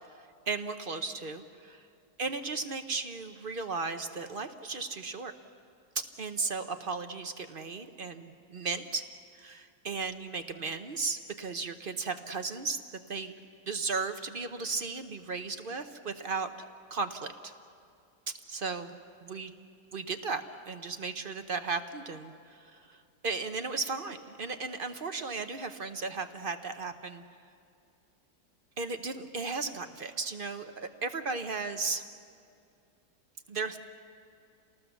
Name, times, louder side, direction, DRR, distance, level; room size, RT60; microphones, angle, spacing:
voice 1, 0.5-1.8 2.2-5.3 6.2-9.0 9.4-12.8 13.1-13.3 13.7-16.5 16.9-17.5 18.5-18.9 19.2-19.5 19.9-22.3 22.7-22.8 23.2-27.2 28.8-32.0 33.5-33.8, right 4 dB, 45° right, 7 dB, 0.7 m, -35 dB
28.5 x 19.0 x 7.1 m, 2.4 s
omnidirectional pair, 1.9 m